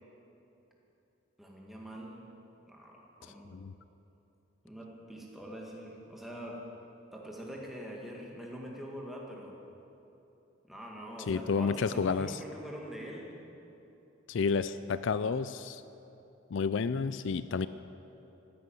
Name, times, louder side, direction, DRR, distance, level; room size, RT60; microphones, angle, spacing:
voice 1, 1.4-2.3 2.7-3.6 4.6-6.7 7.1-9.6 10.7-13.4, equal, ahead, -2 dB, 2.0 m, -44 dB
voice 2, 11.3-12.4 14.3-15.8 16.5-17.7, left 5 dB, 65° left, 14 dB, 0.4 m, -30 dB
15.0 x 10.0 x 9.2 m, 2.9 s
head